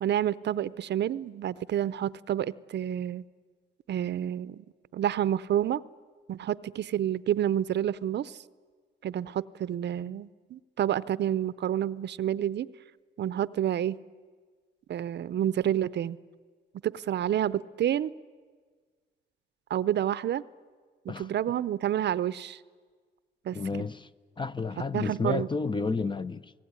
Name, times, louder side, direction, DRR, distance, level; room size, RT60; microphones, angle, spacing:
voice 1, 0.0-3.2 3.9-4.6 4.9-5.8 6.3-8.4 9.0-12.7 13.2-14.0 14.9-16.2 16.8-18.1 19.7-20.4 21.0-22.6 23.4-23.6 24.9-25.5, right 11 dB, 60° right, 0.7 m, -29 dB
voice 2, 23.5-24.1 24.4-26.5, left 4 dB, 25° left, 0.8 m, -31 dB
28.0 x 19.0 x 9.7 m
cardioid pair, 90°, 20 cm